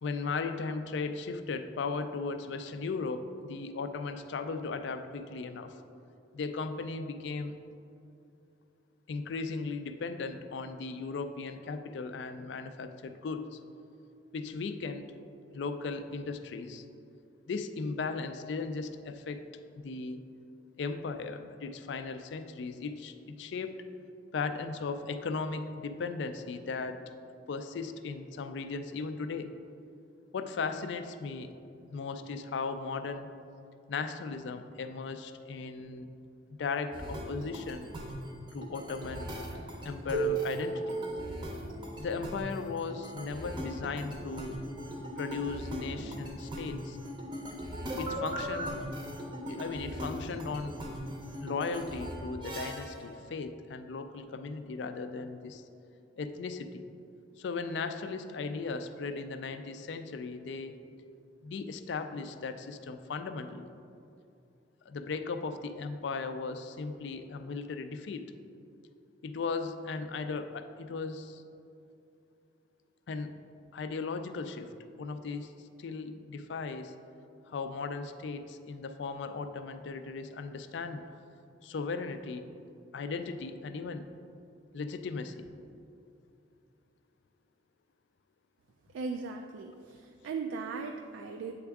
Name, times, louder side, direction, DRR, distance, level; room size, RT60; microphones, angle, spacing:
voice 1, 0.0-5.8 6.3-7.5 9.1-13.6 14.3-15.1 15.5-16.8 17.5-19.4 19.8-20.2 20.8-23.7 24.3-27.0 27.5-29.5 30.3-31.5 31.9-33.3 33.9-36.1 36.6-37.9 38.5-39.3 39.8-41.0 42.0-44.6 45.2-47.0 48.0-48.8 49.5-50.7 51.4-55.6 56.2-56.8 57.4-60.7 61.4-63.7 64.9-68.2 69.2-71.4 73.1-73.3 73.7-74.7 75.0-75.5 75.8-76.9 77.5-81.0 81.6-82.5 82.9-84.0 84.7-85.5, left 4 dB, 65° left, 9 dB, 0.4 m, -37 dB
sound 1, 36.9-53.0, right 1 dB, 25° right, 0.6 m, -38 dB
voice 2, 88.9-91.5, right 4 dB, 90° right, 3 dB, 0.3 m, -38 dB
8.4 x 3.5 x 3.5 m, 2.6 s
head